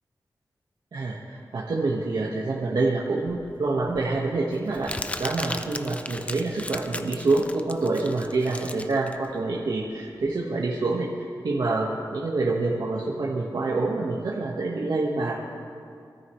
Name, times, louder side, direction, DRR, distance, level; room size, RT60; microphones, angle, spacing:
voice 1, 0.9-4.9 5.2-15.4, right 3 dB, 75° right, -4 dB, 1.4 m, -27 dB
Crumpling crinkling, 3.3-10.3, left 2 dB, 20° left, 0.5 m, -37 dB
23.0 x 13.5 x 3.2 m, 2.4 s
wide cardioid pair, 120°, 7 cm